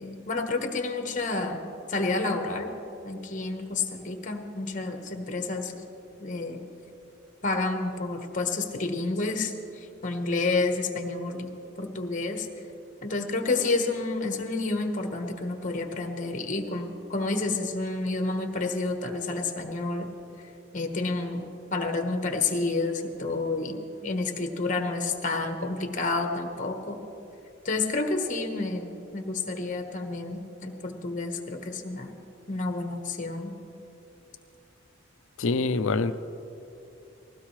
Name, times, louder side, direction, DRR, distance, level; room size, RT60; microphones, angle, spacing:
voice 1, 0.0-1.6 1.9-2.7 3.0-5.8 6.2-6.6 7.4-11.5 11.8-12.5 13.0-20.1 20.7-27.0 27.6-32.1 32.5-33.5, left 3 dB, 40° left, 5 dB, 1.2 m, -30 dB
voice 2, 35.4-36.1, left 3 dB, 80° left, 11 dB, 0.6 m, -25 dB
20.0 x 16.0 x 3.2 m, 2.9 s
head